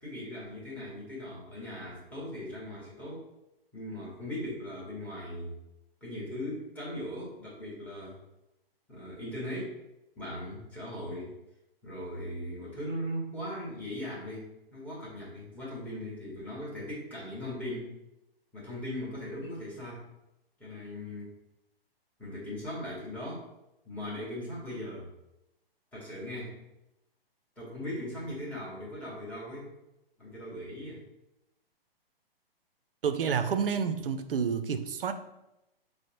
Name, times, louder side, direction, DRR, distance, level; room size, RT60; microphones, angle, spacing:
voice 1, 0.0-3.2 3.7-5.6 6.0-8.2 8.9-9.8 10.2-11.3 11.8-17.9 18.5-20.0 20.6-21.3 22.2-23.4 23.8-25.1 25.9-26.6 27.6-29.7 30.2-31.0, left 1 dB, 5° left, 0.9 m, -39 dB
voice 2, 33.0-35.1, right 6 dB, 65° right, 0.4 m, -29 dB
4.9 x 2.0 x 2.9 m
figure-of-eight pair, 120°, 30 cm